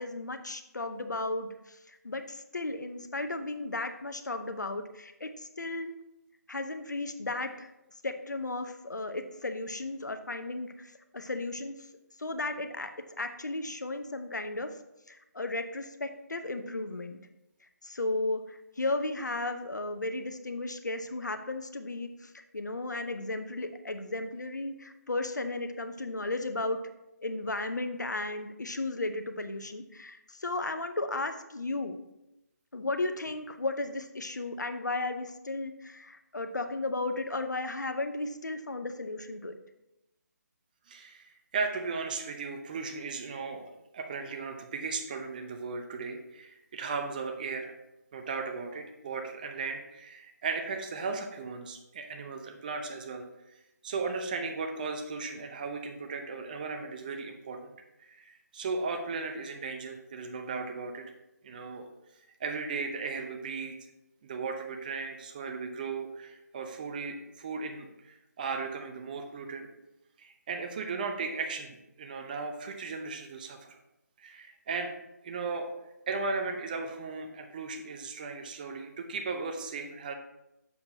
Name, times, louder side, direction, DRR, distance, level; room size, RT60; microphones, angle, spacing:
voice 1, 0.0-1.5 2.0-5.3 5.6-5.9 6.5-7.7 8.0-10.7 11.1-11.7 12.2-12.9 13.2-14.7 15.3-17.2 17.8-18.4 18.8-22.1 22.5-26.8 27.2-31.9 32.7-39.5, left 2 dB, 75° left, 8 dB, 0.7 m, -34 dB
voice 2, 40.9-47.7 48.1-53.2 53.8-57.7 58.0-61.0 61.4-61.9 62.4-63.7 64.2-69.7 70.2-73.8 74.2-74.9 75.2-75.7 76.1-80.1, right 4 dB, 30° right, 4 dB, 0.6 m, -36 dB
6.9 x 6.6 x 2.7 m, 0.90 s
figure-of-eight pair, 150°, 10 cm